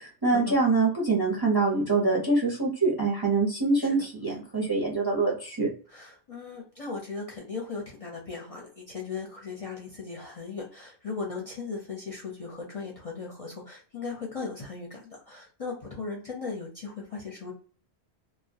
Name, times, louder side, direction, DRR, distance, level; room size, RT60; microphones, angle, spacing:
voice 1, 0.2-5.7, right 3 dB, 30° right, -1 dB, 0.5 m, -25 dB
voice 2, 5.9-17.5, left 4 dB, 40° left, -2 dB, 0.5 m, -37 dB
2.1 x 2.1 x 2.6 m, 0.41 s
omnidirectional pair, 1.1 m